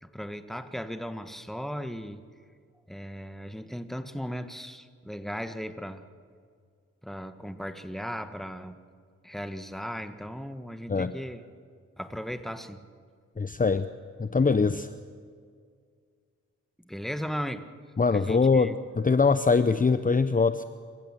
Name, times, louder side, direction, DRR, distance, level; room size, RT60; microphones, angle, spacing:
voice 1, 0.0-2.3 2.9-6.1 7.0-8.8 9.2-11.4 12.0-12.9 16.8-17.7 18.1-18.7, equal, ahead, 9 dB, 1.7 m, -37 dB
voice 2, 13.4-13.9 14.2-14.9 18.0-20.6, left 4 dB, 25° left, 12 dB, 0.8 m, -23 dB
26.5 x 15.0 x 7.5 m, 2.1 s
cardioid pair, 45°, 30 cm